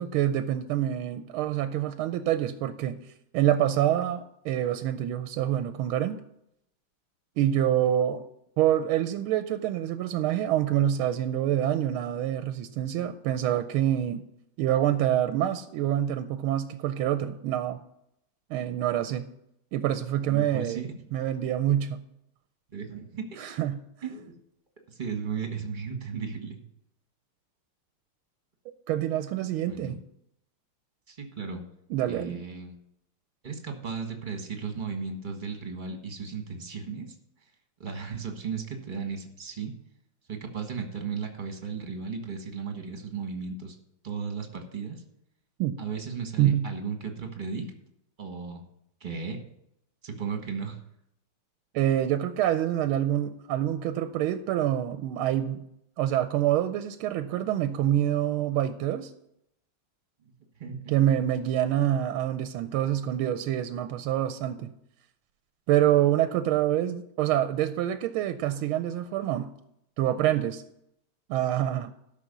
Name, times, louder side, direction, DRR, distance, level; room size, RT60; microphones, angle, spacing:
voice 1, 0.0-3.0 3.3-6.2 7.4-8.2 8.6-14.2 14.6-17.8 18.5-19.3 19.7-20.8 21.1-22.0 23.4-23.8 28.9-30.0 31.9-32.4 45.6-45.8 46.4-46.7 51.7-55.6 56.0-59.1 60.9-64.7 65.7-69.5 70.0-70.6 71.3-71.9, right 11 dB, 85° right, 10 dB, 1.5 m, -26 dB
voice 2, 20.3-21.0 22.7-23.5 24.0-24.3 24.9-26.6 29.7-30.0 31.1-31.6 32.1-32.8 33.4-37.1 37.8-39.7 40.3-43.7 44.0-45.0 45.8-47.7 48.2-48.6 49.0-49.4 50.0-50.8 60.6-61.0, right 5 dB, 25° right, 4 dB, 1.3 m, -35 dB
13.0 x 6.0 x 5.3 m, 0.77 s
omnidirectional pair, 2.3 m